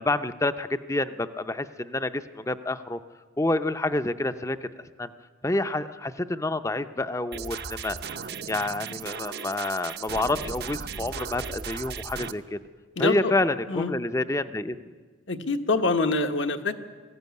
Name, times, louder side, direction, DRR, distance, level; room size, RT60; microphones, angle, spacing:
voice 1, 0.0-3.0 3.4-4.7 5.0-5.1 5.4-8.0 8.5-12.6 13.0-14.8, left 2 dB, 15° left, 11 dB, 0.5 m, -28 dB
sound 1, 7.3-12.3, right 6 dB, 55° right, 0.7 m, -36 dB
voice 2, 13.0-13.3 13.7-13.9 15.3-16.7, left 3 dB, 70° left, 6 dB, 1.2 m, -25 dB
19.5 x 14.5 x 9.4 m, 1.5 s
head